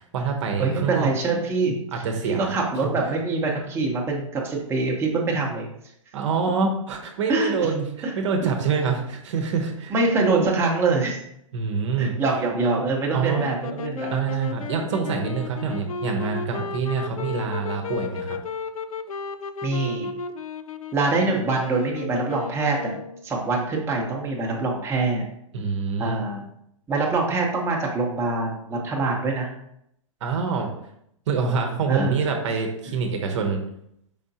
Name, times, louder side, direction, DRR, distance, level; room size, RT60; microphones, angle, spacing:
voice 1, 0.0-1.1 1.9-2.5 6.1-9.9 11.5-12.1 13.1-13.5 14.1-18.4 25.5-26.2 30.2-30.7 31.3-33.6, right 5 dB, 60° right, 3 dB, 0.9 m, -26 dB
voice 2, 0.6-5.7 7.3-7.7 8.0-8.1 8.4-8.5 9.9-11.2 12.0-14.1 19.6-20.1 20.9-25.2 26.0-26.4 26.9-29.5 31.9-32.2, right 3 dB, 15° right, -2 dB, 0.8 m, -24 dB
sound 1, 13.3-23.3, left 5 dB, 90° left, 0.4 m, -34 dB
5.0 x 3.6 x 2.8 m, 0.75 s
hypercardioid pair, 120°, 17 cm